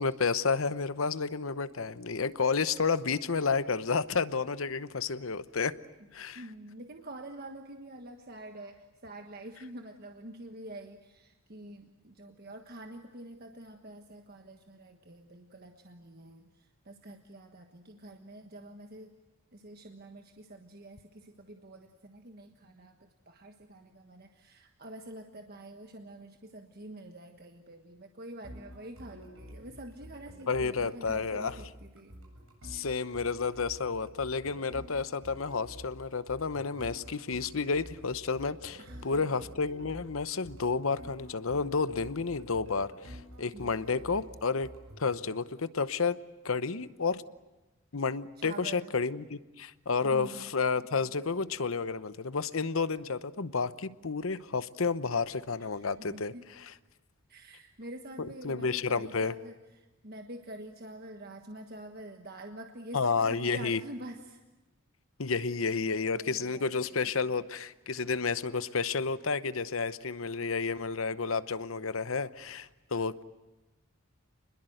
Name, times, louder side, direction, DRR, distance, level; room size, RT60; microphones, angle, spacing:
voice 1, 0.0-5.7 6.1-6.4 30.5-31.6 32.6-44.7 45.0-46.2 46.4-47.2 47.9-56.3 58.4-59.3 62.9-63.8 65.2-73.2, left 4 dB, 75° left, 14 dB, 0.9 m, -31 dB
voice 2, 6.3-19.1 19.5-32.1 32.7-33.0 38.8-39.4 43.5-44.1 48.4-48.9 50.0-50.5 55.7-56.5 57.3-64.4 66.1-67.1, right 1 dB, 45° right, 5 dB, 1.4 m, -47 dB
sound 1, 28.4-45.1, equal, 75° right, 7.6 m, -49 dB
27.5 x 21.0 x 7.9 m, 1.1 s
head